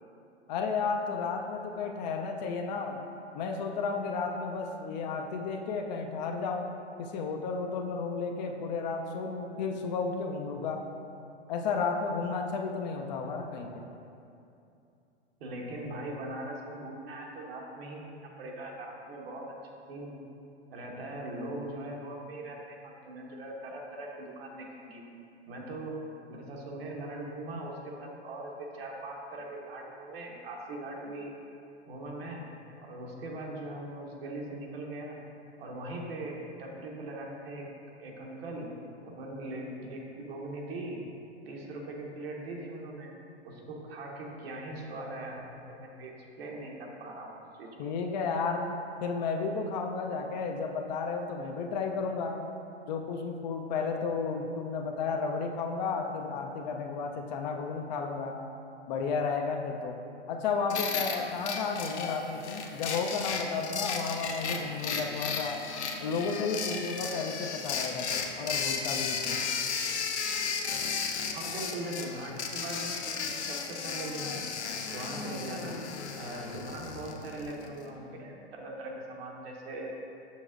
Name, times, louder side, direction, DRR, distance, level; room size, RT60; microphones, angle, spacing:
voice 1, 0.5-3.0 3.3-6.7 7.0-10.8 11.5-13.9 47.8-48.7 49.0-52.5 52.9-58.4 58.9-60.0 60.3-65.6 66.0-69.4, left 4 dB, 40° left, 3 dB, 0.5 m, -33 dB
voice 2, 15.4-19.4 19.9-20.2 20.7-25.0 25.5-31.4 31.9-32.4 32.8-35.2 35.6-37.7 38.0-38.7 39.0-41.0 41.5-43.1 43.4-47.7 71.3-74.4 74.9-75.8 76.1-79.9, right 1 dB, 60° right, -1 dB, 1.2 m, -40 dB
sound 1, 60.7-77.7, left 5 dB, 70° left, 0.8 m, -34 dB
7.1 x 6.3 x 2.5 m, 2.6 s
hypercardioid pair, 110°, 34 cm